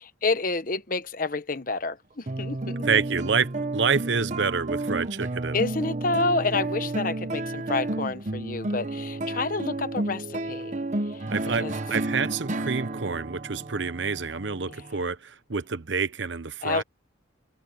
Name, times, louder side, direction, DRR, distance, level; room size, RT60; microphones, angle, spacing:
voice 1, 0.0-3.0 5.5-10.8 11.1-11.2 11.6-11.7 16.6-16.8, left 3 dB, 45° left, 1.2 m, -29 dB
sound 1, 2.3-15.0, right 2 dB, 40° right, 0.9 m, -31 dB
voice 2, 2.8-5.6 11.3-16.8, right 5 dB, 75° right, 1.0 m, -28 dB
head